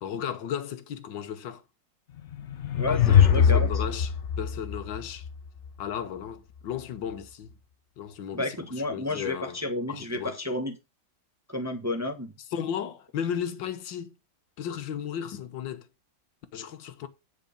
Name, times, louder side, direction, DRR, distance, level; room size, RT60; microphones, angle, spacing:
voice 1, 0.0-1.6 2.9-5.3 5.8-7.6 8.0-9.6 9.9-10.4 12.5-14.2 14.6-15.9 16.5-17.1, left 8 dB, 90° left, 1.7 m, -35 dB
sound 1, 2.2-5.7, left 8 dB, 55° left, 0.8 m, -22 dB
voice 2, 2.7-3.7 8.3-10.7 11.5-12.3, left 2 dB, 10° right, 1.0 m, -31 dB
9.4 x 5.1 x 5.1 m
omnidirectional pair, 2.0 m